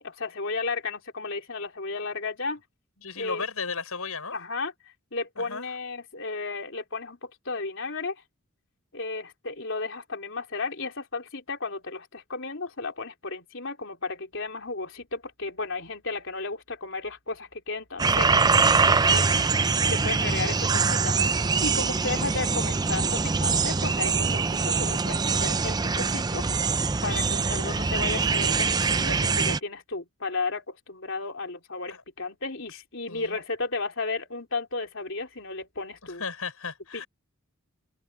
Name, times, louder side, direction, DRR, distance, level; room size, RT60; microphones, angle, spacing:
voice 1, 0.0-2.6 3.2-3.4 4.3-4.7 5.1-8.2 8.9-18.5 18.8-19.4 19.9-26.5 27.0-36.2 36.9-37.0, left 3 dB, 60° left, 3.9 m, -34 dB
voice 2, 3.0-4.4 5.4-5.7 19.1-20.2 31.9-32.0 33.1-33.4 36.2-37.1, left 5 dB, 80° left, 6.1 m, -36 dB
sound 1, 18.0-29.6, right 4 dB, 20° right, 0.4 m, -23 dB
head